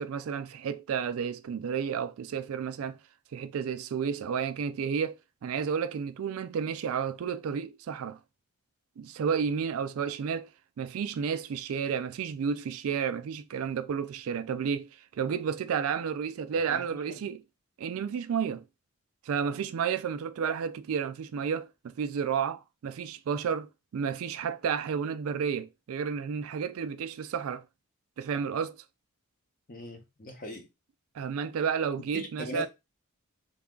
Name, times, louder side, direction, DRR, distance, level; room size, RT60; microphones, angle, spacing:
voice 1, 0.0-3.0 3.3-8.2 9.0-10.5 10.8-17.4 17.8-18.7 19.3-27.6 28.2-28.8 31.1-32.7, right 7 dB, 65° right, 0.3 m, -31 dB
voice 2, 16.7-17.3 29.7-30.7 32.1-32.7, left 1 dB, 40° left, 0.8 m, -40 dB
3.2 x 2.3 x 3.6 m
head